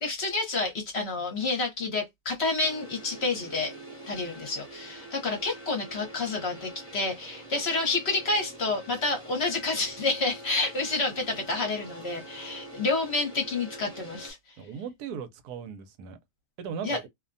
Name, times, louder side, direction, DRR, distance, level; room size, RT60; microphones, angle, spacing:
voice 1, 0.0-3.7 4.1-14.4 16.8-17.0, left 3 dB, 50° left, 1.0 m, -29 dB
sound 1, 2.6-14.3, right 1 dB, 25° left, 1.1 m, -45 dB
voice 2, 14.6-16.2 16.6-17.1, right 7 dB, 80° right, 1.1 m, -37 dB
2.7 x 2.1 x 2.5 m
omnidirectional pair, 1.6 m